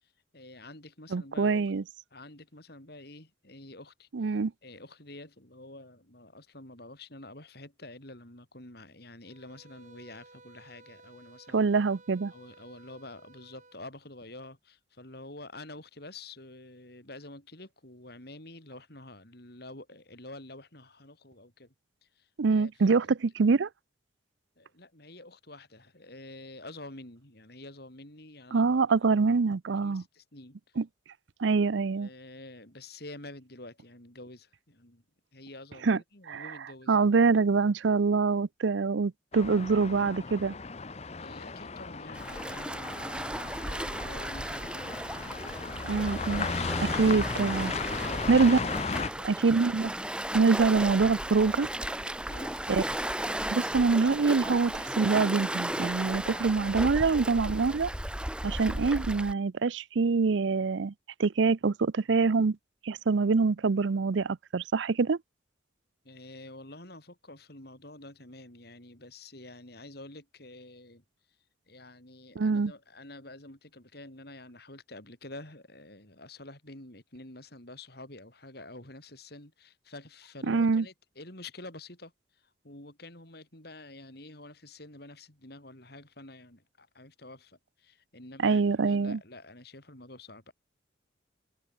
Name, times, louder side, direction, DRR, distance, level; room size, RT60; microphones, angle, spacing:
voice 1, 0.0-1.6 2.1-11.7 12.3-21.7 22.0-23.0 24.6-28.7 29.8-30.6 32.0-35.0 35.3-37.0 41.2-46.1 47.8-48.4 49.1-49.3 52.2-52.6 66.0-71.0 71.7-82.1 82.6-90.5, left 2 dB, 55° left, 5.4 m, -48 dB
voice 2, 1.1-1.8 4.1-4.5 11.5-12.3 22.4-23.7 28.5-30.0 30.8-30.9 31.4-32.1 35.8-36.0 36.3-36.5 36.9-40.5 45.9-46.5 46.8-47.7 48.3-48.6 49.2-49.9 50.3-51.7 52.7-52.8 53.5-57.9 58.4-60.9 61.2-62.6 62.8-65.2 72.4-72.7 80.5-80.9 88.4-89.2, right 4 dB, 75° right, 0.5 m, -25 dB
sound 1, 9.2-13.8, right 3 dB, 40° right, 7.7 m, -56 dB
sound 2, 39.3-49.1, left 4 dB, 35° left, 0.9 m, -36 dB
Waves surf, 42.1-59.3, right 1 dB, 5° right, 1.3 m, -35 dB
head